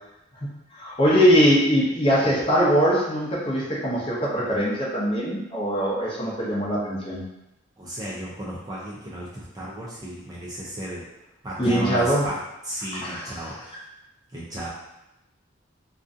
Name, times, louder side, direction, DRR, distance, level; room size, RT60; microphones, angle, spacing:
voice 1, 0.4-7.2 11.6-12.3 13.0-13.4, equal, 25° left, -6 dB, 0.6 m, -22 dB
voice 2, 7.8-11.0 11.4-13.7 14.3-14.7, equal, 20° right, -6 dB, 0.4 m, -34 dB
2.5 x 2.2 x 2.5 m, 0.90 s
head